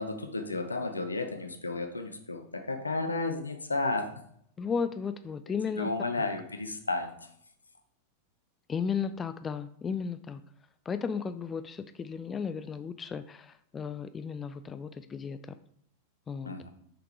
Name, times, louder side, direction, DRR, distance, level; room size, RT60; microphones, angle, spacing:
voice 1, 0.0-4.1 5.8-7.1 16.4-16.7, left 3 dB, 80° left, 7 dB, 1.0 m, -32 dB
voice 2, 4.6-5.9 6.2-6.3 8.7-10.4 10.9-15.4 16.3-16.5, left 6 dB, 20° left, 11 dB, 0.4 m, -34 dB
6.8 x 5.9 x 4.7 m, 0.66 s
figure-of-eight pair, 90°, 0 cm